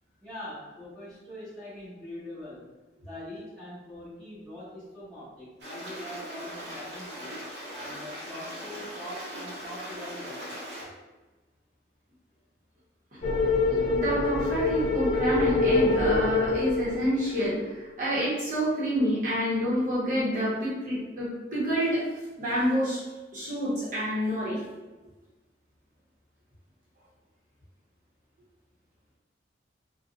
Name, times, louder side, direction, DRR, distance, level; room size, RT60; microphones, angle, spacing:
voice 1, 0.2-2.7 3.0-7.3 7.7-10.4, left 1 dB, 5° left, -13 dB, 1.5 m, -42 dB
Stream, 5.6-10.8, equal, 70° right, 1.0 m, -40 dB
sound 1, 13.2-17.6, left 3 dB, 35° left, 0.3 m, -25 dB
voice 2, 13.7-22.0 22.4-23.0 23.3-24.6, equal, 45° right, -9 dB, 1.1 m, -28 dB
3.8 x 2.4 x 2.4 m, 1.2 s
head